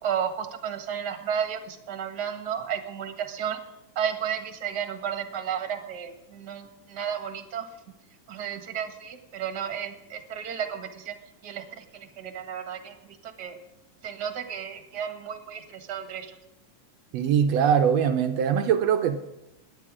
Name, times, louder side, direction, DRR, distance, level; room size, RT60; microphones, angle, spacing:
voice 1, 0.0-3.6 3.9-7.7 8.3-11.1 11.4-12.9 13.2-13.6 14.0-16.3, right 8 dB, 45° right, 6 dB, 1.5 m, -33 dB
voice 2, 17.1-19.2, right 8 dB, 80° right, 7 dB, 1.5 m, -22 dB
17.0 x 11.0 x 4.9 m, 0.93 s
omnidirectional pair, 3.8 m